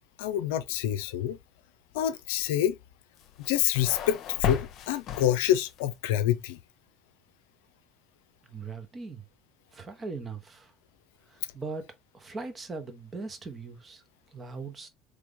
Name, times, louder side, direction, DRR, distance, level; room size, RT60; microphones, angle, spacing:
voice 1, 0.2-1.4 1.9-2.8 3.4-6.6, left 11 dB, 75° left, 0.4 m, -27 dB
sound 1, 3.2-5.9, left 9 dB, 50° left, 0.8 m, -34 dB
voice 2, 8.5-9.2 9.7-10.7 11.3-11.8 12.1-14.0 14.3-14.9, right 4 dB, 30° right, 1.3 m, -39 dB
3.8 x 3.2 x 3.6 m
hypercardioid pair, 75°, 0 cm